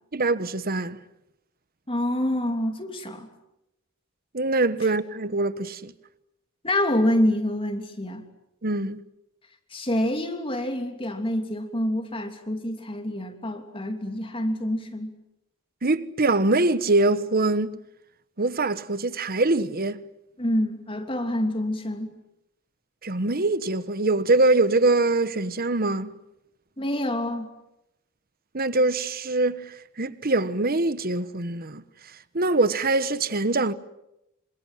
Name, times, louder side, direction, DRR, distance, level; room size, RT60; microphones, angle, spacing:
voice 1, 0.1-1.0 4.3-5.9 8.6-9.0 15.8-17.7 18.4-20.0 23.0-26.1 28.5-31.8 32.3-33.7, right 2 dB, 45° right, 1.3 m, -23 dB
voice 2, 1.9-3.3 6.6-8.2 9.7-15.1 20.4-22.1 26.8-27.5, left 1 dB, 25° left, 3.1 m, -27 dB
27.0 x 26.5 x 7.7 m
head